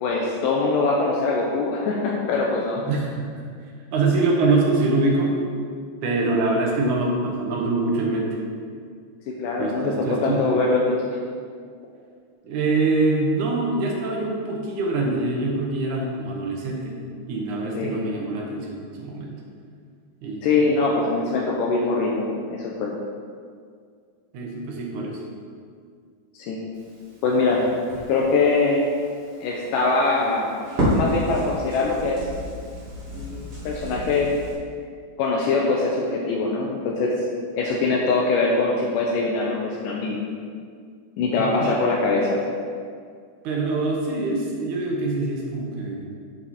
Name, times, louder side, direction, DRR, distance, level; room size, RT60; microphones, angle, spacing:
voice 1, 0.0-2.8 9.4-11.0 17.8-18.0 20.4-22.9 26.3-26.6 27.2-27.6 28.1-28.9 29.4-30.5 30.9-32.2 33.1-34.3 35.2-37.1 37.6-40.2 41.2-42.4, left 3 dB, 80° left, -2 dB, 2.4 m, -23 dB
voice 2, 2.9-3.3 3.9-5.3 6.0-8.4 9.6-10.4 12.4-17.0 17.3-19.4 20.2-20.6 24.3-25.2 41.4-41.8 43.4-46.1, right 3 dB, 65° right, -1 dB, 2.7 m, -24 dB
Crackle, 26.7-34.5, equal, 45° right, 3.2 m, -31 dB
8.8 x 7.4 x 4.4 m, 2.1 s
omnidirectional pair, 3.9 m